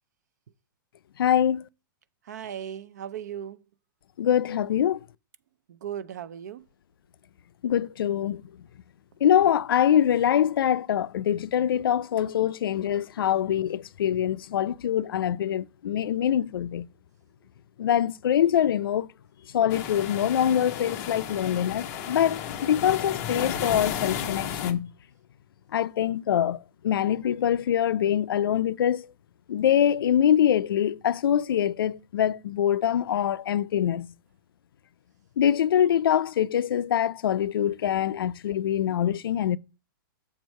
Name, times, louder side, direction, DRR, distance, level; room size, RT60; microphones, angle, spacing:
voice 1, 1.2-1.6 4.2-5.0 7.6-8.4 9.2-16.9 17.8-19.1 19.5-24.9 25.7-29.1 29.5-34.1 35.4-39.6, left 10 dB, 85° left, 0.4 m, -24 dB
voice 2, 2.2-3.6 5.7-6.6, right 9 dB, 50° right, 0.5 m, -37 dB
sound 1, 19.7-24.7, left 9 dB, 20° left, 0.5 m, -33 dB
7.2 x 4.6 x 5.3 m
hypercardioid pair, 175°, 12 cm